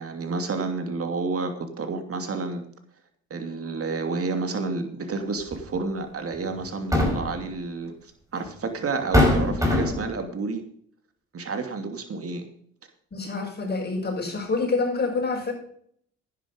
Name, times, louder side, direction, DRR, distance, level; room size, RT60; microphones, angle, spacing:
voice 1, 0.0-2.6 3.3-10.6 11.3-12.5, right 3 dB, 45° right, 7 dB, 2.8 m, -30 dB
sound 1, 5.5-5.7 6.7-7.4 8.5-8.6 9.1-10.1, left 1 dB, 10° right, 5.1 m, -21 dB
voice 2, 13.1-15.5, left 3 dB, 30° left, -1 dB, 6.2 m, -27 dB
11.0 x 10.5 x 5.2 m, 0.63 s
hypercardioid pair, 55°, 32 cm